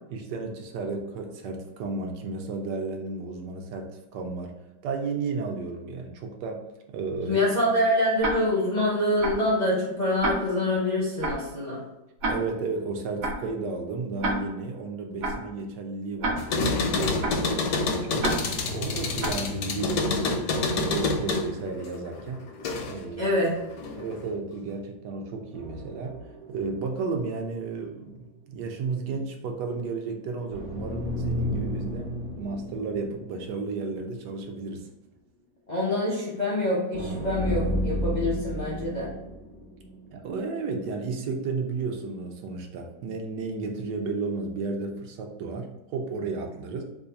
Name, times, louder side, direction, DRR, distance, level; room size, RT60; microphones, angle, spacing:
voice 1, 0.1-4.6 4.8-7.4 12.2-18.3 18.7-22.5 22.8-23.3 23.9-26.2 26.5-34.9 40.1-46.8, right 4 dB, 85° right, 3 dB, 1.2 m, -33 dB
voice 2, 7.3-11.8 23.2-23.5 35.7-39.1, left 1 dB, 45° left, -7 dB, 0.5 m, -25 dB
Tick-tock, 8.2-8.3 9.2-9.3 10.2-10.3 11.2-11.3 12.2-12.3 13.2-13.3 14.2-14.3 15.2-15.3 16.2-16.3 17.2-17.3 18.2-18.3 19.2-19.3, right 2 dB, 60° right, 1.0 m, -27 dB
sound 1, 16.4-23.1 23.4-24.3, left 3 dB, 70° left, 0.9 m, -28 dB
sound 2, 25.5-27.6 27.9-28.0 30.5-33.9 34.3-34.4 36.9-40.3, equal, 15° right, 0.5 m, -33 dB
3.1 x 2.4 x 3.9 m, 0.96 s
omnidirectional pair, 1.8 m